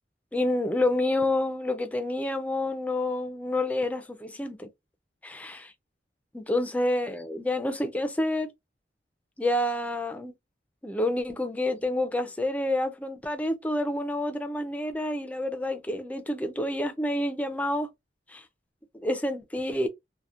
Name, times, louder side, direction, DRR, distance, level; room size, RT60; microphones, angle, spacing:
voice 1, 0.3-4.7 5.2-5.7 6.3-8.5 9.4-10.3 10.8-17.9 18.3-18.4 19.0-19.9, left 1 dB, 10° left, 0.3 m, -28 dB
2.7 x 2.0 x 2.3 m
head